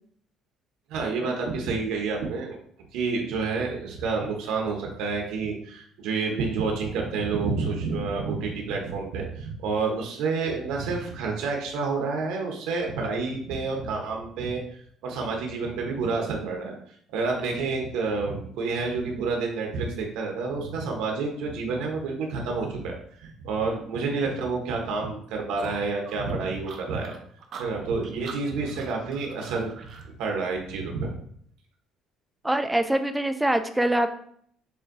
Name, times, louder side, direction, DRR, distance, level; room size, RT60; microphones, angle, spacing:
voice 1, 0.9-2.6 2.9-16.7 17.1-27.1 27.6-29.7 30.0-31.1, right 4 dB, 85° right, 1 dB, 0.9 m, -29 dB
sound 1, 25.6-30.1, right 5 dB, 45° right, 0.6 m, -44 dB
voice 2, 32.4-34.1, right 1 dB, 5° right, 8 dB, 0.3 m, -24 dB
6.8 x 2.6 x 2.6 m, 0.63 s
cardioid pair, 150°, 0 cm